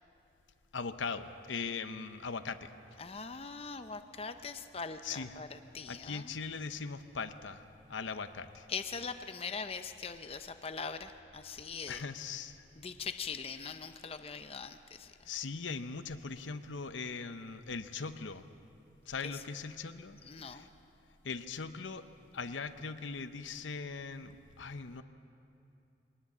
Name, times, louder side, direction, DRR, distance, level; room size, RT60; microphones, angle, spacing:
voice 1, 0.7-2.7 5.0-5.4 5.9-8.7 11.9-12.6 15.3-18.5 19.1-20.7 21.2-22.1 22.3-25.0, left 5 dB, 85° left, 10 dB, 0.8 m, -40 dB
voice 2, 3.0-6.4 8.7-12.0 12.8-15.1 20.3-20.7, left 5 dB, 30° left, 8 dB, 0.6 m, -41 dB
21.5 x 18.5 x 7.3 m, 2.7 s
head